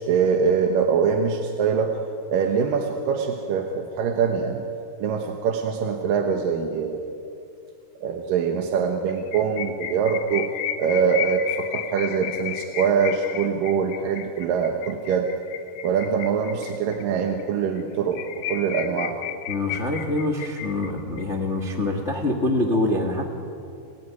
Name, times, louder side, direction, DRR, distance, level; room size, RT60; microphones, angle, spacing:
voice 1, 0.0-2.0 2.3-4.7 5.0-7.1 8.0-10.5 10.8-15.3 15.8-18.2 18.5-19.2, right 6 dB, 65° right, 3 dB, 2.6 m, -23 dB
sound 1, 9.1-17.0 17.4-17.5 17.8-17.9 18.1-21.2, left 11 dB, 70° left, 2.7 m, -33 dB
voice 2, 19.5-23.3, left 2 dB, 55° left, 2 dB, 0.7 m, -25 dB
30.0 x 16.5 x 9.5 m, 2.6 s
omnidirectional pair, 4.7 m